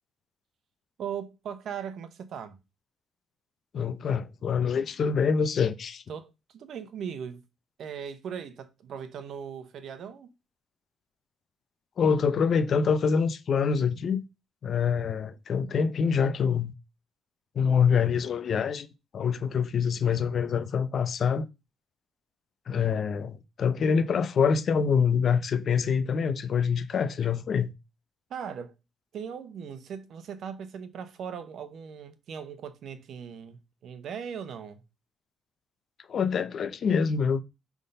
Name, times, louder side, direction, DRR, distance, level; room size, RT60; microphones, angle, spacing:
voice 1, 1.0-2.6 6.1-7.4 7.8-10.3 28.3-28.7 29.1-34.8, right 7 dB, 65° right, 0.9 m, -39 dB
voice 2, 3.7-6.0 12.0-14.2 14.6-16.7 17.5-18.9 19.1-21.5 22.7-27.7 36.1-37.4, left 6 dB, 55° left, 0.6 m, -25 dB
5.5 x 3.5 x 5.4 m
cardioid pair, 105°, 0 cm